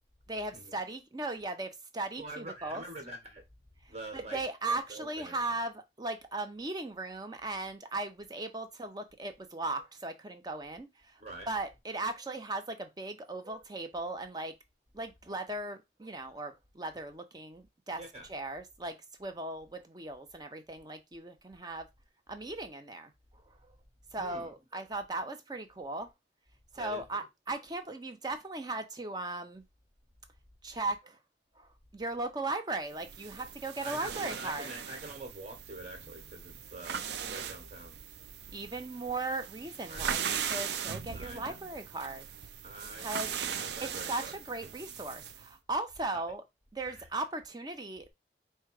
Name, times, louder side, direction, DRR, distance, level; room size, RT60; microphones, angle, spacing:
voice 1, 0.3-2.8 4.1-10.9 11.5-14.5 14.9-18.0 18.3-21.9 22.3-23.1 24.1-26.1 26.7-29.6 30.6-31.2 31.6-34.7 38.5-42.2 42.9-43.3 43.8-46.4 46.7-48.1, right 2 dB, 25° right, 0.6 m, -37 dB
voice 2, 2.2-3.4 3.9-4.4 4.7-5.6 11.2-11.5 18.0-18.3 24.2-24.5 26.7-27.0 33.8-38.0 39.9-40.1 41.1-41.7 42.6-44.4 46.8-47.1, right 1 dB, 40° right, 1.4 m, -45 dB
sound 1, 32.9-45.5, right 8 dB, 75° right, 0.4 m, -39 dB
4.7 x 2.2 x 4.6 m
head